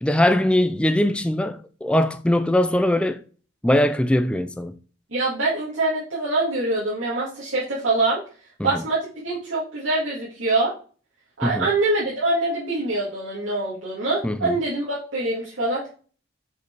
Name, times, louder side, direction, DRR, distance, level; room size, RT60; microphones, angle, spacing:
voice 1, 0.0-3.2 3.6-4.7 8.6-8.8 11.4-11.7 14.2-14.5, left 1 dB, 5° left, 0.3 m, -21 dB
voice 2, 5.1-8.2 8.6-10.7 11.4-15.9, right 2 dB, 70° right, 2.1 m, -24 dB
5.4 x 4.6 x 4.6 m
head